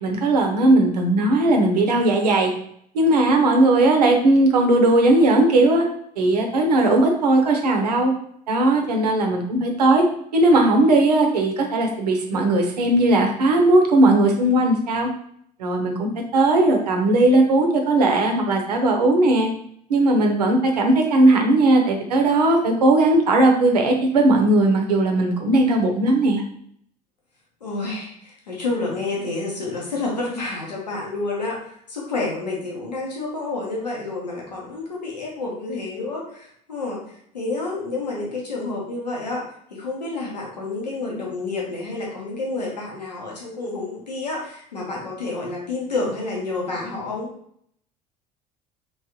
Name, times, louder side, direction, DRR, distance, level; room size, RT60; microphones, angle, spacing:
voice 1, 0.0-2.5 2.9-5.9 6.2-8.1 8.5-10.1 10.3-15.1 15.6-19.5 19.9-26.4, right 2 dB, 75° right, 3 dB, 0.6 m, -18 dB
voice 2, 27.6-47.3, left 3 dB, 80° left, -3 dB, 0.9 m, -29 dB
3.1 x 3.1 x 2.8 m, 0.66 s
figure-of-eight pair, 60°, 21 cm